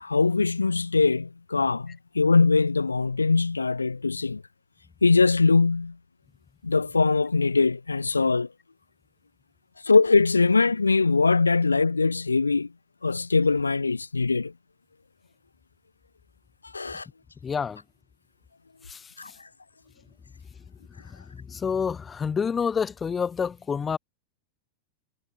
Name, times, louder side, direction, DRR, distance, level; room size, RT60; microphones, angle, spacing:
voice 1, 0.0-4.4 5.0-5.9 6.6-8.5 9.8-12.7 13.0-14.5 16.7-17.1 19.2-19.3, left 4 dB, 80° left, 1.9 m, -22 dB
voice 2, 17.4-17.8 18.9-19.3 21.0-24.0, left 6 dB, 20° left, 4.2 m, -29 dB
figure-of-eight pair, 90°, 0 cm